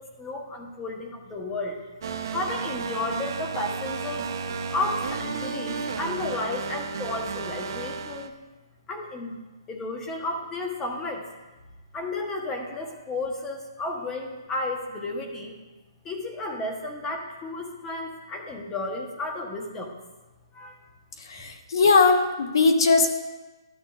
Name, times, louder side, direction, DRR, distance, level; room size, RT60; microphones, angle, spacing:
voice 1, 0.0-1.8 2.3-4.3 4.7-8.3 8.9-9.4 9.7-11.3 11.9-15.5 16.0-19.9 20.5-20.8, left 2 dB, 10° left, 2 dB, 0.9 m, -32 dB
sound 1, 2.0-8.3, right 5 dB, 50° right, 0.7 m, -33 dB
voice 2, 21.3-23.1, left 4 dB, 65° left, 5 dB, 0.9 m, -19 dB
12.0 x 7.1 x 2.4 m, 1.2 s
hypercardioid pair, 165°, 3 cm